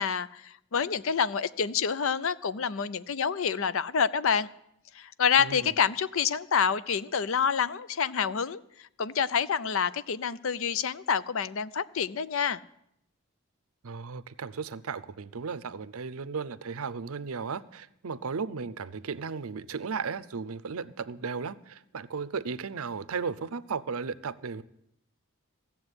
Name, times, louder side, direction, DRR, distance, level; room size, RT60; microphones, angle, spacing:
voice 1, 0.0-4.5 4.9-8.6 9.0-12.6, left 7 dB, 65° left, 17 dB, 0.5 m, -27 dB
voice 2, 5.4-5.7 13.8-24.6, right 5 dB, 75° right, 17 dB, 0.6 m, -35 dB
15.5 x 7.2 x 9.7 m, 0.77 s
head